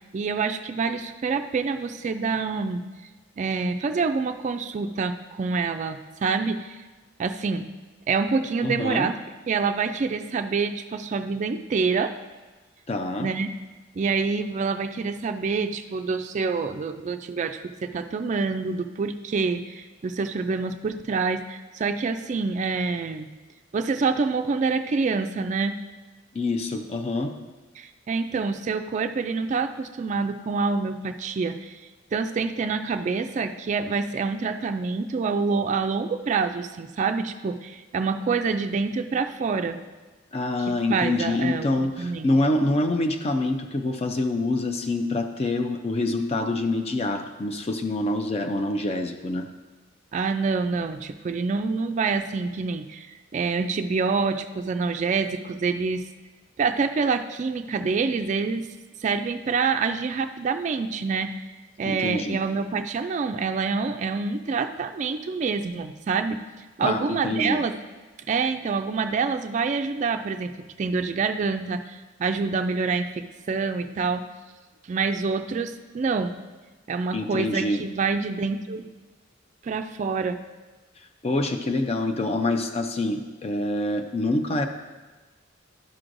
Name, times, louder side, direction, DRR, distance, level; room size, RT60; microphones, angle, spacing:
voice 1, 0.1-2.8 3.4-6.8 7.2-7.6 8.1-9.1 9.5-12.1 13.2-13.5 14.0-23.3 23.7-25.7 27.8-31.8 32.1-39.8 40.6-42.3 50.1-56.0 56.6-58.7 59.0-61.3 61.8-66.4 66.8-67.8 68.3-70.5 70.8-74.2 74.9-76.3 76.9-78.9 79.6-80.4, right 4 dB, 40° right, 7 dB, 0.3 m, -26 dB
voice 2, 8.6-9.1 12.9-13.3 26.3-27.3 40.3-49.5 61.9-62.4 66.8-67.6 77.1-77.8 81.2-84.7, left 2 dB, 35° left, 6 dB, 0.4 m, -26 dB
11.0 x 6.1 x 2.6 m, 1.2 s
head